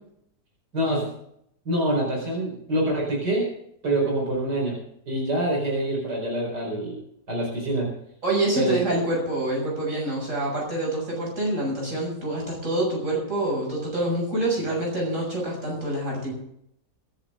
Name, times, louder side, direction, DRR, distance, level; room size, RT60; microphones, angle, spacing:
voice 1, 0.7-1.1 1.6-3.5 3.8-4.8 5.1-7.0 7.3-7.9 8.6-8.8, right 1 dB, 85° right, -2 dB, 5.1 m, -25 dB
voice 2, 8.2-16.3, right 1 dB, 50° right, -2 dB, 7.2 m, -26 dB
22.5 x 11.0 x 3.7 m, 0.73 s
omnidirectional pair, 1.8 m